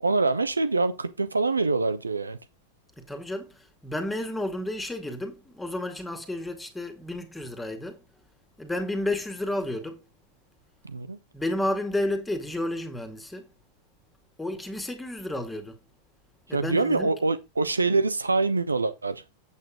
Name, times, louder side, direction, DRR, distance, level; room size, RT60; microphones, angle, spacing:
voice 1, 0.0-2.4 10.8-11.2 16.5-19.4, right 3 dB, 80° right, 0.9 m, -25 dB
voice 2, 3.0-8.0 8.6-10.0 11.3-13.5 14.4-15.8 16.5-17.2, left 1 dB, 10° left, 2.1 m, -31 dB
8.5 x 8.3 x 3.7 m
figure-of-eight pair, 90°, 0 cm